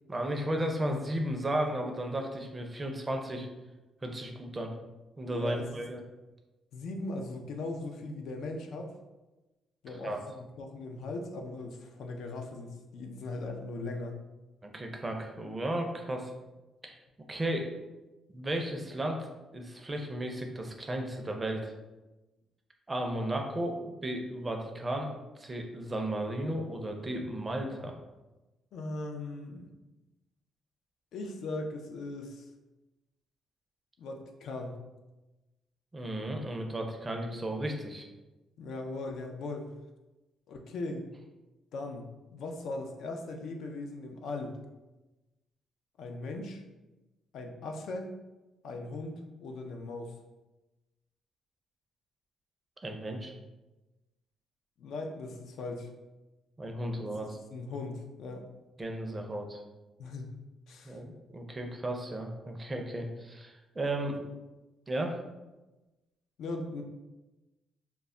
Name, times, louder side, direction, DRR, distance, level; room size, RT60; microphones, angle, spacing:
voice 1, 0.1-3.5 4.0-4.7 5.2-6.0 10.0-10.2 14.6-16.3 16.8-17.0 17.3-17.7 18.3-19.2 19.5-21.7 22.9-25.1 25.4-27.9 35.9-38.0 52.8-53.3 56.6-57.4 58.8-59.6 60.8-64.2 64.9-65.1, right 1 dB, 25° right, 2 dB, 0.4 m, -34 dB
voice 2, 5.3-5.8 6.7-8.9 9.8-14.1 28.7-29.7 31.1-32.4 34.0-34.8 38.6-39.7 40.5-41.1 41.7-42.1 42.3-44.6 46.0-46.6 47.3-48.1 48.6-50.1 54.8-55.9 57.5-58.5 60.0-60.3 60.7-61.0 64.0-64.2 66.4-66.8, left 2 dB, 75° left, 3 dB, 0.3 m, -39 dB
2.2 x 2.0 x 3.5 m, 1.1 s
cardioid pair, 90°, 0 cm